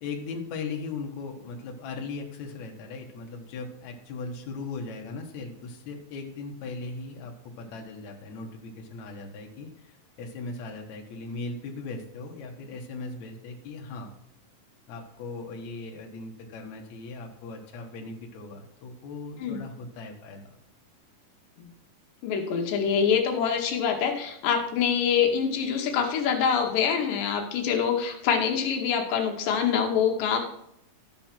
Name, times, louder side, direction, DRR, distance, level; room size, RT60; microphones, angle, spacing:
voice 1, 0.0-14.1 14.9-20.4, left 3 dB, 65° left, 1 dB, 2.3 m, -38 dB
voice 2, 22.2-30.4, left 7 dB, 80° left, 3 dB, 2.6 m, -25 dB
13.0 x 4.4 x 5.8 m, 0.76 s
omnidirectional pair, 3.8 m